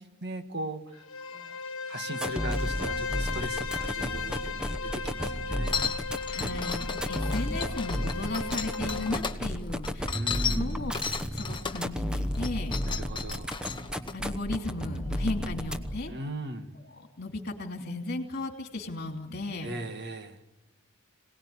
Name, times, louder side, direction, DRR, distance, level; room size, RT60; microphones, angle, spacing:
voice 1, 0.2-1.0 1.3-1.6 1.9-5.9 10.1-10.8 12.8-13.6 16.1-16.7 19.6-20.4, right 1 dB, 50° right, 7 dB, 1.8 m, -38 dB
Bowed string instrument, 0.9-9.2, left 5 dB, 65° left, 1.6 m, -36 dB
sound 1, 2.1-16.1, equal, 5° right, 1.0 m, -33 dB
sound 2, 5.6-9.4 9.8-11.9 12.3-14.1, left 6 dB, 20° left, 1.2 m, -34 dB
voice 2, 6.3-10.2 10.5-10.9 11.3-12.8 14.1-16.1 17.0-19.7, left 2 dB, 50° left, 4 dB, 2.9 m, -35 dB
26.5 x 18.5 x 9.7 m, 1.1 s
head